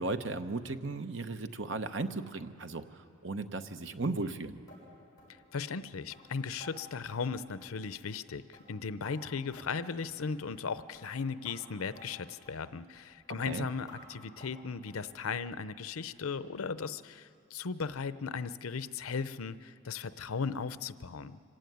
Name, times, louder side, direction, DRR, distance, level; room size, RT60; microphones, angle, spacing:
voice 1, 0.0-2.8 3.2-4.6 13.5-13.7, right 3 dB, 60° right, 8 dB, 0.9 m, -35 dB
sound 1, 4.7-4.8 5.2-5.3 5.7-5.8 6.1-6.2 6.6-6.7 7.1-7.2 7.6-7.8 8.1-8.3 8.5-9.1 9.5-9.8 10.0-10.2 10.5-10.7 10.9-11.1 11.4-11.6 11.9-12.1 12.4-12.6 12.9-13.1 13.4-13.5 13.9-14.0 14.4-14.6 14.9-15.0 15.4-15.5 15.9-16.0 16.4-16.5 16.9-17.0, left 1 dB, 20° left, 7.0 m, -54 dB
voice 2, 5.5-21.4, left 5 dB, 90° left, 14 dB, 0.6 m, -37 dB
25.5 x 15.5 x 9.3 m, 2.8 s
head